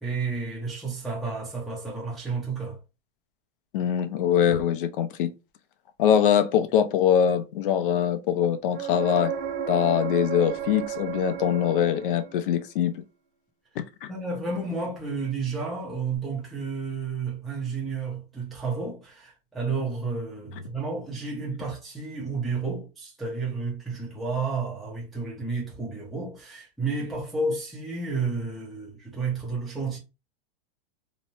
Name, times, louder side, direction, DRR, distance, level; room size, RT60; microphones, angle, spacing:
voice 1, 0.0-2.8 14.1-30.0, right 4 dB, ahead, 0.5 m, -31 dB
voice 2, 3.7-5.3 6.0-9.3 9.7-13.0 13.8-14.1, left 9 dB, 60° left, 0.5 m, -23 dB
sound 1, 8.7-12.5 16.2-16.3, right 8 dB, 85° right, 0.9 m, -33 dB
3.1 x 2.0 x 2.6 m
supercardioid pair, 155°, 30 cm